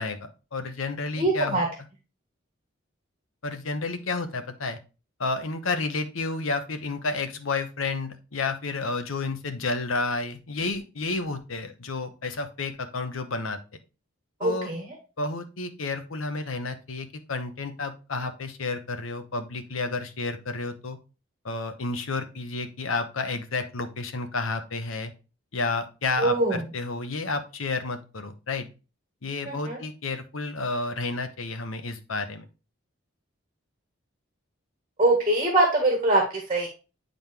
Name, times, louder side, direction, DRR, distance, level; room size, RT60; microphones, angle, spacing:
voice 1, 0.0-1.6 3.4-4.8 5.2-13.6 14.4-14.7 15.2-21.0 21.4-25.1 25.5-28.7 29.2-32.4, left 3 dB, 85° left, 8 dB, 0.9 m, -31 dB
voice 2, 1.2-1.7 14.4-15.0 26.2-26.6 29.4-29.8 35.0-36.7, right 2 dB, 25° right, 1 dB, 1.6 m, -23 dB
9.1 x 3.9 x 3.4 m, 0.31 s
head